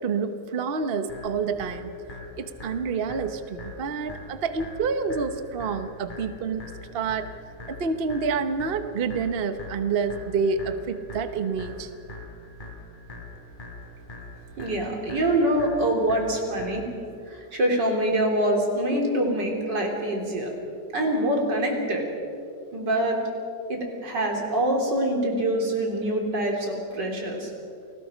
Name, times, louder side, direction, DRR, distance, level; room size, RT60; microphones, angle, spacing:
voice 1, 0.0-1.9 2.4-6.7 6.9-7.3 7.7-11.9, right 5 dB, 40° right, 9 dB, 1.1 m, -28 dB
sound 1, 1.1-17.1, left 2 dB, 25° left, 4.4 m, -43 dB
voice 2, 14.6-16.9 17.3-20.5 20.9-22.1 22.7-23.2 23.7-27.5, right 1 dB, 90° right, 1 dB, 4.1 m, -25 dB
28.5 x 19.5 x 5.1 m, 2.4 s
omnidirectional pair, 1.8 m